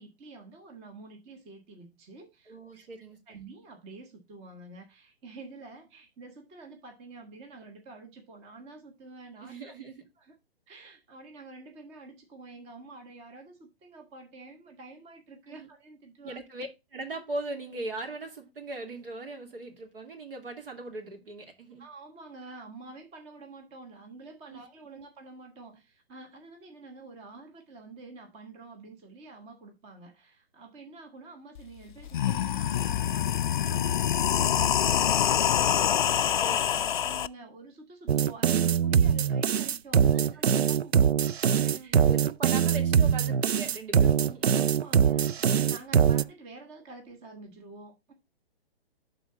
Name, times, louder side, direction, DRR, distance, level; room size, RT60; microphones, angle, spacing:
voice 1, 0.0-2.8 3.3-9.7 10.2-10.3 10.7-16.4 21.8-36.6 37.0-41.1 41.6-42.1 44.5-45.3 45.6-48.1, right 3 dB, 20° right, 1.3 m, -48 dB
voice 2, 2.5-3.4 9.4-10.0 15.5-15.7 16.2-21.8 24.5-24.6 36.4-36.9 39.9-40.3 41.6-44.6, right 2 dB, 60° right, 2.5 m, -40 dB
sound 1, 31.6-31.7 32.0-37.3, left 10 dB, 50° left, 0.4 m, -25 dB
sound 2, 38.1-46.2, right 8 dB, 80° right, 0.5 m, -23 dB
11.5 x 3.9 x 3.8 m
figure-of-eight pair, 130°, 31 cm